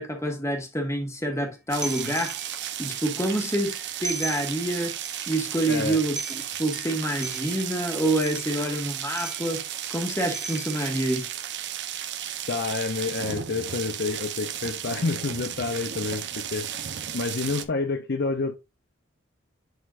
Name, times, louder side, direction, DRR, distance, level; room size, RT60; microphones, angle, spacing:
voice 1, 0.0-2.4 2.8-4.9 5.3-9.6 9.9-11.3, right 1 dB, 15° left, 1.8 m, -27 dB
sound 1, 1.7-17.6, right 10 dB, 55° right, 0.8 m, -34 dB
sound 2, 1.8-2.7 3.3-4.7 5.0-5.3 5.7-5.8 6.2-7.8 8.2-8.7 9.2-9.8 10.3-11.1, right 2 dB, ahead, 0.5 m, -38 dB
voice 2, 5.7-6.0 12.5-16.7 17.1-18.6, left 3 dB, 50° left, 0.6 m, -28 dB
11.5 x 4.3 x 2.5 m
head